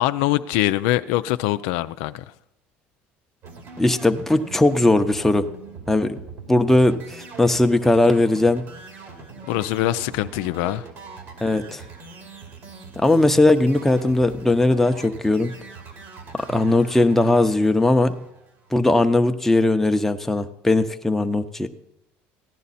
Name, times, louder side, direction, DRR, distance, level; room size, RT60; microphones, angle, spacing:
voice 1, 0.0-2.2 9.5-10.8, left 16 dB, 85° left, 0.4 m, -23 dB
sound 1, 3.4-18.8, right 4 dB, 60° right, 2.7 m, -41 dB
voice 2, 3.8-5.4 5.9-6.2 6.5-8.6 11.4-11.8 13.0-15.5 16.5-18.1 18.7-21.7, left 2 dB, 5° left, 0.8 m, -19 dB
15.0 x 10.5 x 4.2 m
supercardioid pair, 100°, 5 cm